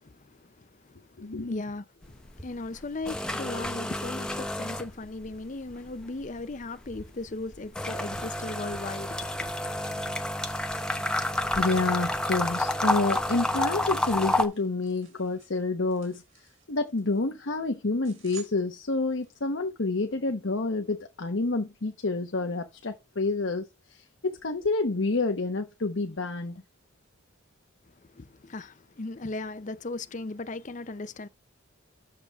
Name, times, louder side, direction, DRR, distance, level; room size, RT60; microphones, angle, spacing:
voice 1, 0.0-9.5 28.1-31.3, left 2 dB, 35° left, 0.6 m, -38 dB
voice 2, 1.2-1.6 11.0-11.1 11.6-26.6, left 3 dB, 65° left, 1.0 m, -29 dB
sound 1, 2.0-2.4 2.7-5.4 5.7-14.5, left 1 dB, 5° left, 0.8 m, -30 dB
sound 2, 11.1-19.4, right 6 dB, 85° right, 5.1 m, -55 dB
9.3 x 6.9 x 3.5 m
head